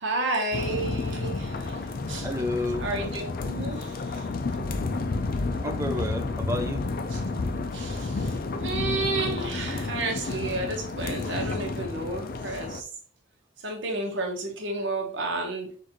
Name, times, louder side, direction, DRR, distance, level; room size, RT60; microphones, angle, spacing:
voice 1, 0.0-2.3 2.8-4.3 7.1-7.2 7.7-12.9 13.6-15.7, right 2 dB, 70° right, 2 dB, 1.2 m, -31 dB
sound 1, 0.5-12.8, left 3 dB, 50° left, 0.4 m, -31 dB
voice 2, 2.2-2.9 5.6-6.8, left 1 dB, 15° right, 6 dB, 0.4 m, -30 dB
6.3 x 2.6 x 3.0 m, 0.43 s
head